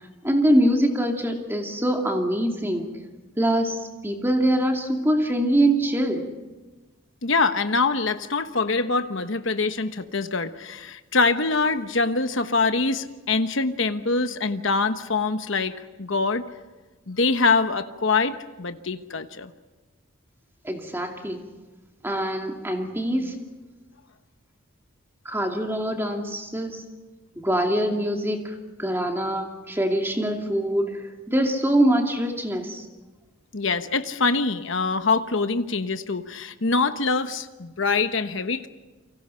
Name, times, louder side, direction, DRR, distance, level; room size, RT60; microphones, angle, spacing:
voice 1, 0.2-2.9 3.4-6.3 20.6-21.4 22.0-23.3 25.2-26.8 27.3-32.9, right 1 dB, 10° right, 2 dB, 2.5 m, -24 dB
voice 2, 7.2-16.4 17.1-19.5 33.5-38.7, left 4 dB, 60° left, 9 dB, 1.1 m, -24 dB
29.5 x 24.0 x 5.7 m, 1.2 s
head